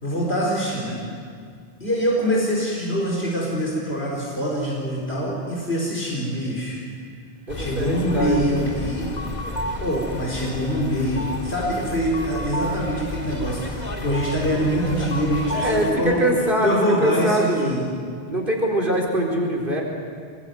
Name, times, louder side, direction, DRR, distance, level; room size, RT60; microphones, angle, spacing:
voice 1, 0.0-1.0 1.8-6.8 7.5-9.1 9.8-16.2 16.6-17.8, equal, 80° left, -3 dB, 4.8 m, -24 dB
sound 1, 7.5-15.9, left 1 dB, 45° left, 2.4 m, -31 dB
voice 2, 7.5-8.5 15.5-17.7 18.3-19.8, right 1 dB, 60° right, -1 dB, 4.6 m, -23 dB
25.5 x 21.5 x 9.3 m, 2.1 s
omnidirectional pair, 1.0 m